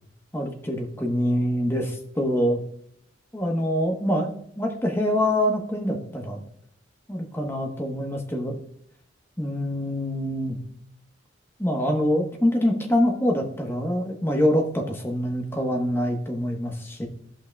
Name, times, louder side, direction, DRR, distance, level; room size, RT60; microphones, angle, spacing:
voice 1, 0.3-2.6 3.3-6.4 7.1-8.6 9.4-10.6 11.6-17.1, equal, 15° left, 2 dB, 1.1 m, -25 dB
16.0 x 5.6 x 2.3 m, 0.69 s
head